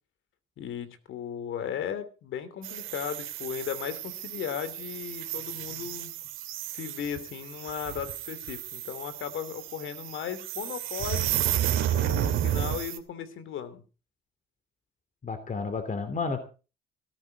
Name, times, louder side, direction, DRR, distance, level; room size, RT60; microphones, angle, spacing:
voice 1, 0.6-6.1 6.7-11.3 11.9-13.8, left 8 dB, 80° left, 12 dB, 2.8 m, -36 dB
sound 1, 2.6-13.0, right 11 dB, 85° right, 2.6 m, -32 dB
voice 2, 15.2-16.4, left 4 dB, 40° left, 8 dB, 2.9 m, -31 dB
17.0 x 14.5 x 4.0 m, 0.34 s
cardioid pair, 90°, 20 cm